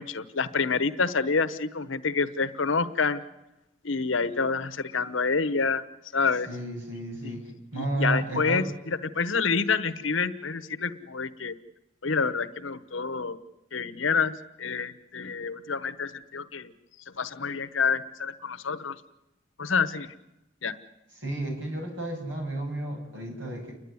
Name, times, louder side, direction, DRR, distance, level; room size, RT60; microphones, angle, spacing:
voice 1, 0.0-3.2 3.8-5.8 6.1-6.5 7.2-7.4 7.7-11.5 12.0-13.4 13.7-14.3 14.6-16.7 17.2-19.0 19.6-20.1 20.6-20.8, left 5 dB, 75° left, 11 dB, 1.1 m, -28 dB
voice 2, 6.5-7.4 7.7-8.7 21.2-23.7, right 2 dB, 65° right, 0 dB, 7.3 m, -32 dB
29.0 x 11.0 x 9.7 m, 0.92 s
head